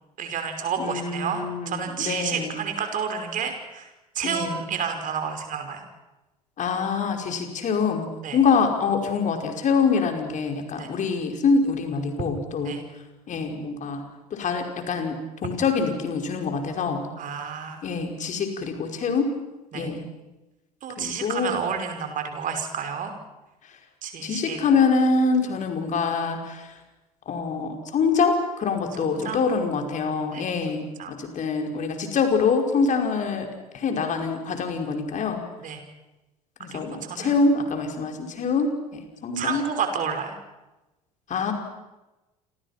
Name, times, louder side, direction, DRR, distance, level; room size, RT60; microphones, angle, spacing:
voice 1, 0.2-3.9 4.2-5.9 8.2-8.4 10.8-10.9 12.6-12.8 17.2-17.8 19.7-19.9 20.8-23.1 24.0-24.6 29.0-29.4 30.3-30.4 31.0-31.1 35.6-35.8 36.7-37.4 39.4-40.4, right 7 dB, 40° right, 6 dB, 5.4 m, -30 dB
voice 2, 0.8-2.6 4.2-4.6 6.6-12.8 13.3-14.0 14.3-17.1 17.8-19.3 19.7-20.0 21.0-21.6 24.2-26.7 27.3-33.5 33.7-35.4 36.6-39.7 41.3-41.5, left 4 dB, 40° left, 4 dB, 5.4 m, -25 dB
29.0 x 27.0 x 6.0 m, 1.0 s
figure-of-eight pair, 65°, 20 cm